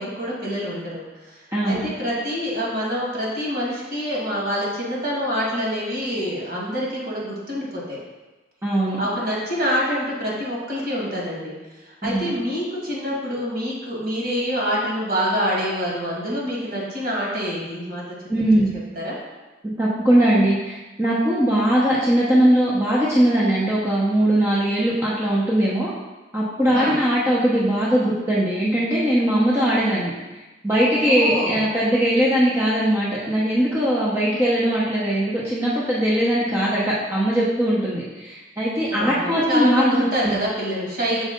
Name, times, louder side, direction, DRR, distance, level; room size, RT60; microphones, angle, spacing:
voice 1, 0.0-1.4 1.6-8.0 9.0-11.5 11.9-18.0 18.4-18.6 18.9-19.1 26.7-27.0 31.0-31.7 38.9-41.2, equal, 55° right, -4 dB, 1.9 m, -26 dB
voice 2, 1.5-1.9 8.6-9.0 12.0-12.3 18.3-18.7 19.8-25.9 26.3-30.1 30.6-40.4, right 1 dB, 15° right, -7 dB, 0.8 m, -20 dB
6.4 x 3.2 x 5.1 m, 1.1 s
head